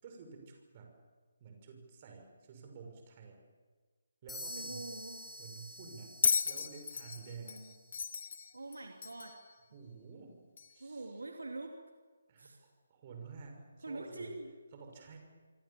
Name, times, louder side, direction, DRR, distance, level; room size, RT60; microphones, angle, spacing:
voice 1, 0.0-0.9 1.4-3.4 4.2-5.0 5.4-6.1 6.4-7.6 9.7-10.4 10.7-11.2 12.3-14.3 14.7-15.2, right 5 dB, 35° right, 3 dB, 6.1 m, -51 dB
sound 1, 4.3-8.0, equal, 5° left, 7.8 m, -48 dB
voice 2, 4.5-5.2 7.4-7.7 8.5-9.4 10.8-11.8 12.4-12.6 13.8-14.5, right 2 dB, 70° right, 3 dB, 2.8 m, -44 dB
Bell, 6.2-9.4 10.6-10.7, left 5 dB, 50° left, 1.3 m, -34 dB
27.0 x 25.0 x 7.3 m, 1.4 s
figure-of-eight pair, 145°, 0 cm